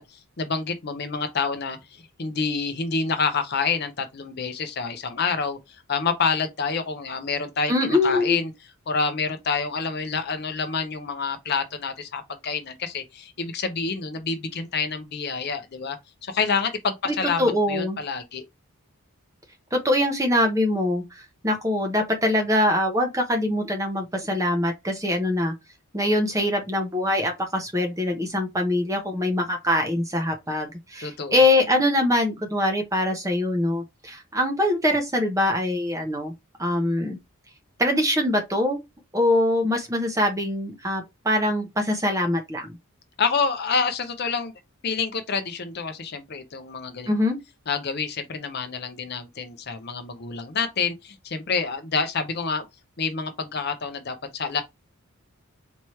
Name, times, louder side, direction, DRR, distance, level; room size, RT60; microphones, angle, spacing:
voice 1, 0.0-8.5 8.9-18.4 31.0-31.4 43.2-44.5 44.8-47.1 47.7-52.7 53.0-54.6, left 5 dB, 45° left, 0.6 m, -28 dB
voice 2, 7.7-8.4 17.1-18.0 19.7-25.5 25.9-36.3 36.6-37.2 37.8-38.8 39.1-42.8 47.1-47.4, left 1 dB, 15° right, 0.9 m, -23 dB
4.4 x 3.0 x 3.1 m
head